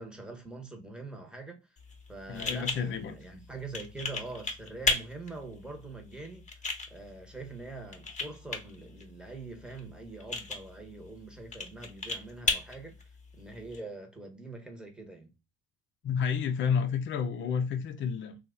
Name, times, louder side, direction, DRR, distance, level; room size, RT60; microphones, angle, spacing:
voice 1, 0.0-1.6 2.1-6.5 6.9-12.9 13.3-15.3, right 3 dB, 5° right, 1.1 m, -44 dB
sound 1, 1.8-13.8, left 3 dB, 25° left, 1.0 m, -37 dB
voice 2, 2.3-3.2 16.0-18.4, left 6 dB, 40° left, 0.5 m, -30 dB
2.7 x 2.4 x 3.8 m
hypercardioid pair, 60°, 29 cm